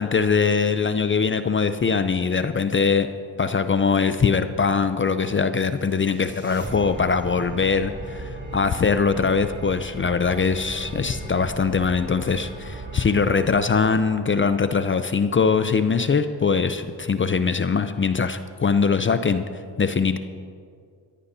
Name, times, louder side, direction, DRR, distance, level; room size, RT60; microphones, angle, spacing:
voice 1, 0.0-3.1 3.4-19.4 19.8-20.2, left 5 dB, 25° left, 10 dB, 0.6 m, -22 dB
sound 1, 5.6-14.8, right 1 dB, 25° right, 3.1 m, -37 dB
22.0 x 14.5 x 2.8 m, 2.1 s
supercardioid pair, 70°, 45 cm